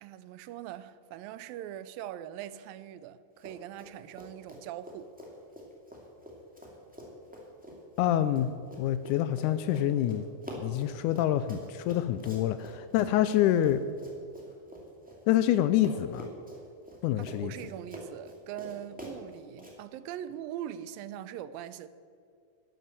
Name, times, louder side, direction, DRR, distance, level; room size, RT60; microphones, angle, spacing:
voice 1, 0.0-5.1 17.4-21.9, right 11 dB, 80° right, 2.3 m, -41 dB
Run, 3.4-15.5 15.8-19.7, equal, 5° right, 1.6 m, -46 dB
voice 2, 8.0-8.5 8.8-10.3 10.6-13.8 15.3-16.3 17.0-17.5, left 12 dB, 90° left, 1.7 m, -26 dB
12.0 x 11.0 x 7.4 m
omnidirectional pair, 4.1 m